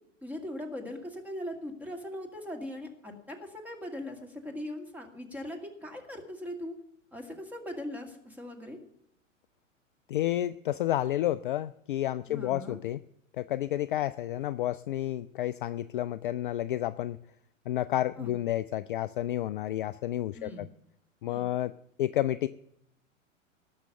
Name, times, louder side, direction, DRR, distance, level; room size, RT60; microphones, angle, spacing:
voice 1, 0.2-6.8 7.1-8.8 12.3-12.8 18.2-18.3 20.3-20.7 21.3-21.5, left 1 dB, 5° right, 2 dB, 2.2 m, -40 dB
voice 2, 10.1-13.0 13.4-17.2 17.7-20.7 21.2-21.7 22.0-22.5, left 13 dB, 45° left, 14 dB, 0.4 m, -30 dB
18.0 x 6.4 x 6.8 m, 0.77 s
figure-of-eight pair, 105°, 39 cm